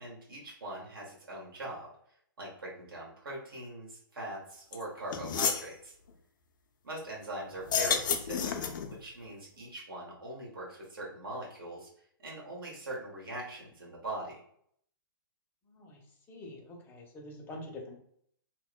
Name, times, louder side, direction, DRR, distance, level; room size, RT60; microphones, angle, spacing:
voice 1, 0.0-1.9 2.4-5.9 6.8-8.6 8.9-11.9 12.2-14.4, right 1 dB, 75° right, -4 dB, 1.1 m, -41 dB
sound 1, 4.7-4.8 5.1-5.7 7.6-8.9, left 6 dB, 60° left, 0.4 m, -30 dB
voice 2, 15.7-16.0 16.3-18.0, left 1 dB, 15° left, 0 dB, 0.6 m, -46 dB
2.8 x 2.0 x 2.2 m, 0.66 s
hypercardioid pair, 120°, 12 cm